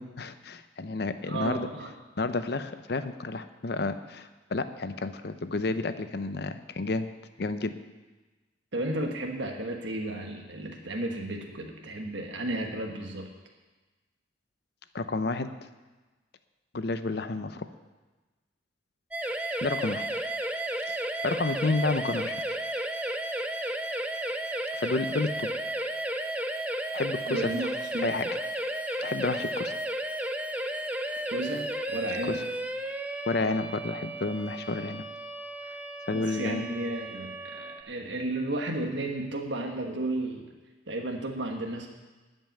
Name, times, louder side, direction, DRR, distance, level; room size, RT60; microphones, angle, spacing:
voice 1, 0.0-1.7 2.2-7.1 7.4-7.8 14.9-15.5 16.7-17.7 19.6-20.1 20.9-21.0 21.2-22.3 24.8-25.5 26.9-27.5 28.0-28.4 29.0-29.8 32.3-32.4 33.3-35.0 36.1-36.7, left 3 dB, 55° left, 10 dB, 0.6 m, -30 dB
voice 2, 1.2-1.9 8.7-13.3 27.3-28.1 31.3-32.4 36.1-40.5 40.9-41.9, right 1 dB, 75° right, 2 dB, 1.3 m, -33 dB
sound 1, 19.1-37.8, right 1 dB, 10° right, 0.6 m, -33 dB
12.5 x 5.5 x 9.0 m, 1.2 s
head